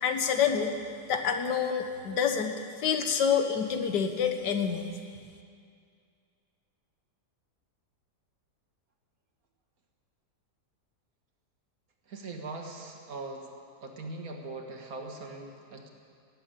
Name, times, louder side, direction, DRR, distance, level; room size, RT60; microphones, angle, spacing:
voice 1, 0.0-0.7 1.1-4.9, left 7 dB, 85° left, 6 dB, 1.7 m, -27 dB
voice 2, 12.1-13.5 13.8-15.9, right 3 dB, 60° right, 2 dB, 1.9 m, -40 dB
17.5 x 7.8 x 9.0 m, 2.3 s
omnidirectional pair, 1.8 m